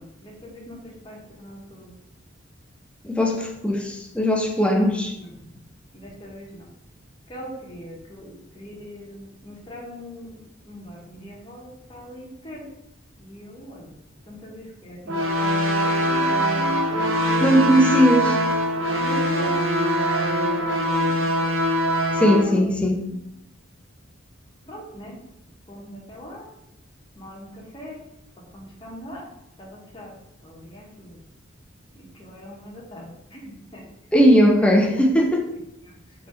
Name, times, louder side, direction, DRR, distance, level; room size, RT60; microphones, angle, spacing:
voice 1, 0.2-0.8 1.0-1.8 4.6-4.8 6.0-6.5 7.3-9.2 9.4-10.4 10.7-12.6 13.3-13.8 14.3-16.9 18.9-19.5 19.8-20.2 24.7-25.1 25.7-26.4 27.2-27.5 27.7-28.0 28.5-29.2 29.6-30.1 30.5-30.9 32.2-33.0 33.3-33.8, equal, 25° left, 0.9 m, -40 dB
voice 2, 3.0-5.2 17.4-18.4 22.2-23.0 34.1-35.5, equal, 5° left, 0.3 m, -18 dB
sound 1, 15.1-22.4, equal, 80° right, 0.7 m, -22 dB
3.4 x 2.6 x 4.2 m
head